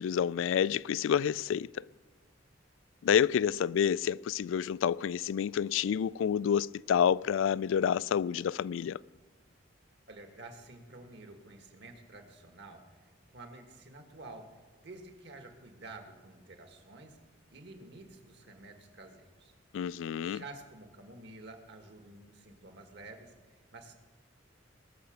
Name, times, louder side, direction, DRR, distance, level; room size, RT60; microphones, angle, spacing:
voice 1, 0.0-1.7 3.0-9.0 19.7-20.4, left 8 dB, 90° left, 0.3 m, -28 dB
voice 2, 10.1-17.2 17.5-19.5 20.2-23.9, right 2 dB, 65° right, 1.8 m, -50 dB
20.5 x 6.9 x 6.5 m
head